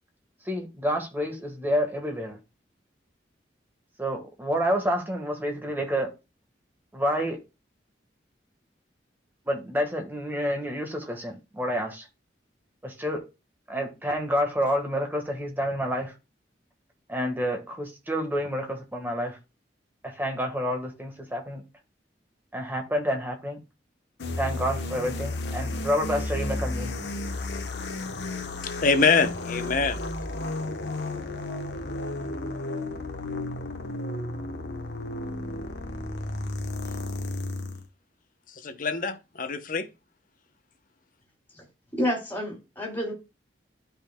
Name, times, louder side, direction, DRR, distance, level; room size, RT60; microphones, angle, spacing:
voice 1, 0.4-2.4 4.0-6.1 6.9-7.4 9.4-12.1 12.8-13.3 13.7-16.1 17.1-19.4 20.0-21.6 22.5-23.6 24.3-26.9, equal, 10° right, 1.5 m, -29 dB
sound 1, 24.2-37.8, left 2 dB, 70° left, 1.0 m, -33 dB
voice 2, 28.6-30.0 38.6-39.9, left 4 dB, 45° left, 0.8 m, -24 dB
voice 3, 42.0-43.1, equal, 10° left, 3.1 m, -29 dB
12.0 x 5.4 x 2.3 m
head